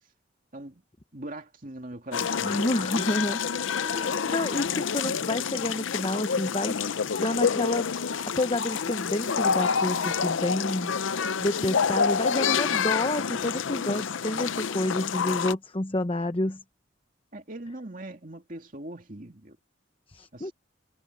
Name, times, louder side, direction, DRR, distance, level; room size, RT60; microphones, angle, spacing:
voice 1, 1.1-2.6 17.3-19.6 20.3-20.5, right 1 dB, 45° right, 2.6 m, -41 dB
sound 1, 2.1-15.5, left 6 dB, 80° left, 0.6 m, -28 dB
voice 2, 2.4-3.4 3.8-6.8 7.2-7.9 8.4-16.6 20.1-20.5, left 1 dB, 30° left, 0.9 m, -29 dB
head